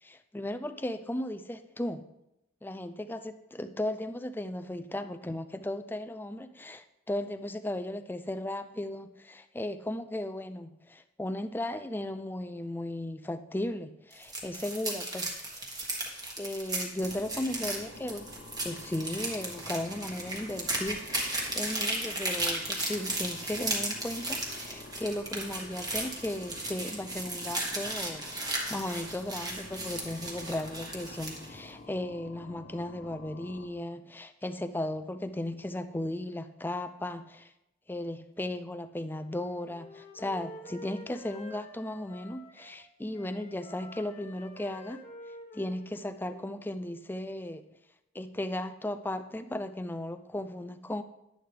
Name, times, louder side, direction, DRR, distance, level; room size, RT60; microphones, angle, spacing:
voice 1, 0.0-2.0 2.6-15.7 16.4-18.3 18.6-37.5 37.9-45.0 45.5-47.6 48.1-51.0, left 1 dB, 10° left, 10 dB, 0.4 m, -36 dB
sound 1, 14.1-31.5, right 2 dB, 20° right, 1.5 m, -35 dB
sound 2, 17.0-33.7, left 2 dB, 45° left, 1.0 m, -49 dB
Wind instrument woodwind instrument, 39.2-42.8 43.1-46.9, left 1 dB, 30° left, 1.3 m, -49 dB
10.5 x 10.0 x 3.4 m, 0.88 s
head